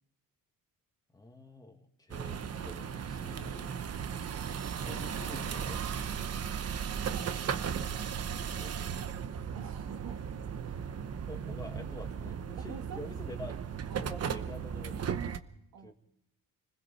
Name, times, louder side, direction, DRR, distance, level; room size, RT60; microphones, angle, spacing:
voice 1, 1.1-3.8 4.8-5.8 8.6-8.7 11.3-13.5 14.0-15.1 15.8-15.9, left 2 dB, 10° left, 4 dB, 2.2 m, -47 dB
sound 1, 2.1-15.4, right 7 dB, 40° right, 1.0 m, -36 dB
voice 2, 9.5-10.3 10.6-10.9 12.6-13.0 13.9-14.1 15.7-15.9, right 6 dB, 70° right, 4 dB, 2.2 m, -47 dB
30.0 x 20.5 x 4.3 m, 0.74 s
cardioid pair, 135°, 37 cm